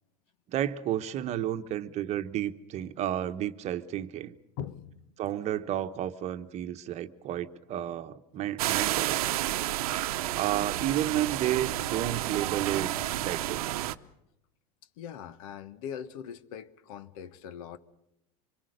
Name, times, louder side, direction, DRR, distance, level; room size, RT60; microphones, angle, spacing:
voice 1, 0.5-4.4 5.2-9.3 10.3-12.9 13.2-13.7, right 12 dB, 40° right, 1.1 m, -31 dB
voice 2, 4.6-5.1 15.0-17.8, left 8 dB, 75° left, 1.4 m, -41 dB
sound 1, 8.6-13.9, right 14 dB, 90° right, 0.9 m, -30 dB
25.5 x 23.0 x 6.6 m
supercardioid pair, 135°, 18 cm